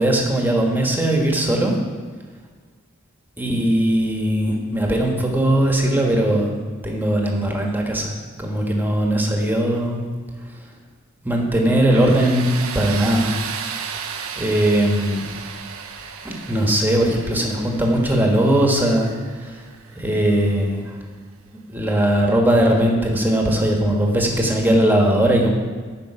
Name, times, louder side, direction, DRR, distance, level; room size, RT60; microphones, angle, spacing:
voice 1, 0.0-1.8 3.4-6.6 6.8-8.1 8.4-10.0 11.2-13.3 14.4-15.3 16.2-19.1 19.4-19.6 19.9-20.9 21.7-25.5, right 1 dB, 10° right, 0 dB, 1.4 m, -19 dB
Tools, 11.9-20.7, right 6 dB, 90° right, 0.9 m, -34 dB
14.0 x 5.3 x 5.7 m, 1.5 s
head